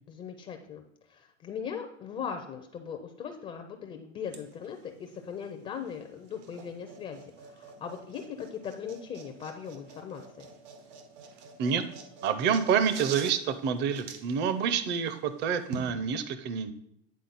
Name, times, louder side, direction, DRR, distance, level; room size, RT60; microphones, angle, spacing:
voice 1, 0.1-0.8 1.1-10.5, left 7 dB, 20° left, 6 dB, 0.4 m, -39 dB
sound 1, 4.3-15.9, right 5 dB, 80° right, 1.3 m, -48 dB
voice 2, 12.2-16.7, right 7 dB, 30° right, 12 dB, 0.5 m, -28 dB
9.4 x 4.0 x 4.0 m, 0.78 s
supercardioid pair, 135°, 35 cm